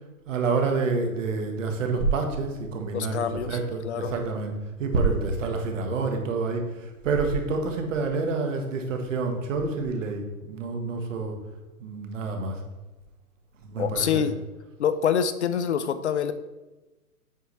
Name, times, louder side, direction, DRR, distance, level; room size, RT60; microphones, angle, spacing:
voice 1, 0.3-4.5 4.8-11.3 11.8-12.6 13.6-14.2, right 4 dB, 55° right, 4 dB, 1.3 m, -28 dB
voice 2, 2.9-3.6 3.8-4.1 13.8-14.4 14.8-16.3, left 8 dB, 50° left, 12 dB, 0.5 m, -26 dB
8.0 x 5.5 x 3.2 m, 1.1 s
hypercardioid pair, 165°, 45 cm